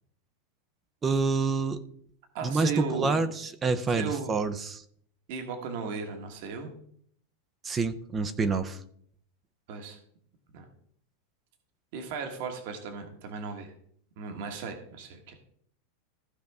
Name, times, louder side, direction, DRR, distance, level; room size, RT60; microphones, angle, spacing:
voice 1, 1.0-1.8 2.4-4.8 7.6-8.8, right 4 dB, 15° right, 11 dB, 0.5 m, -27 dB
voice 2, 2.3-3.3 3.9-4.4 5.3-6.7 9.7-10.0 10.5-10.7 11.9-13.7 14.2-15.4, right 5 dB, 50° right, 5 dB, 1.5 m, -36 dB
15.5 x 5.3 x 3.5 m, 0.65 s
supercardioid pair, 170°, 0 cm